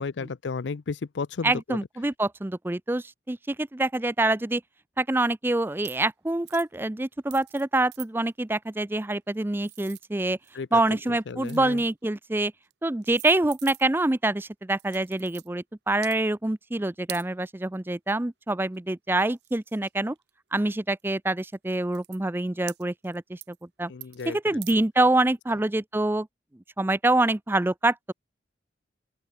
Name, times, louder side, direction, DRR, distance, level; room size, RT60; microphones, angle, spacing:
voice 1, 0.0-1.8 10.5-10.8 11.1-11.8 23.9-24.6, left 4 dB, 75° left, 0.5 m, -33 dB
voice 2, 1.4-4.6 5.0-10.4 10.7-12.5 12.8-20.1 20.5-23.9 24.3-26.3 26.8-28.1, right 2 dB, 10° right, 0.4 m, -26 dB
sound 1, 5.8-6.1 6.4-6.7 7.3-7.6 7.9-8.1 9.1-10.6 11.0-11.9 12.6-12.7 13.0-14.1 14.8-15.5 15.9-16.2 17.1-17.3 18.7-18.8 19.2-20.3 21.0-21.1 21.5-21.6 21.9-22.2 22.7-23.2 23.4-23.6 24.0-24.3 24.6-24.8, right 17 dB, 65° right, 1.2 m, -44 dB
open air
head